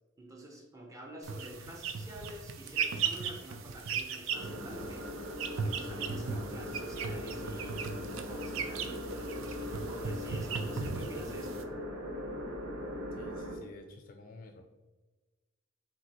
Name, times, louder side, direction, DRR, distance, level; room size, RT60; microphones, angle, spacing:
voice 1, 0.2-11.7, equal, 15° right, 0 dB, 0.7 m, -49 dB
sound 1, 1.2-11.6, right 6 dB, 70° right, 0.4 m, -37 dB
sound 2, 4.3-13.6, equal, 90° right, 0.9 m, -40 dB
voice 2, 13.1-14.6, left 2 dB, 40° left, 4 dB, 0.4 m, -51 dB
4.9 x 3.4 x 2.9 m, 1.2 s
head